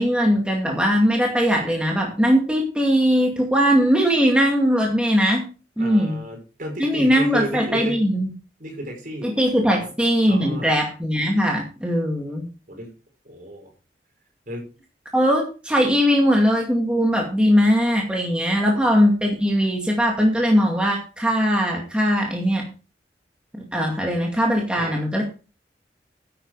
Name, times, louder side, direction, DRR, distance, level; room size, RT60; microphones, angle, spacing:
voice 1, 0.0-5.4 5.8-6.2 6.8-8.3 9.2-12.5 15.1-22.7 23.6-25.2, equal, 5° right, -1 dB, 2.3 m, -20 dB
voice 2, 5.8-8.1 8.6-9.9 10.3-10.7 12.7-12.9 13.2-13.7 14.5-14.7 18.7-18.9 24.7-25.0, right 1 dB, 50° right, 1 dB, 5.5 m, -33 dB
11.0 x 9.2 x 4.9 m, 0.34 s
head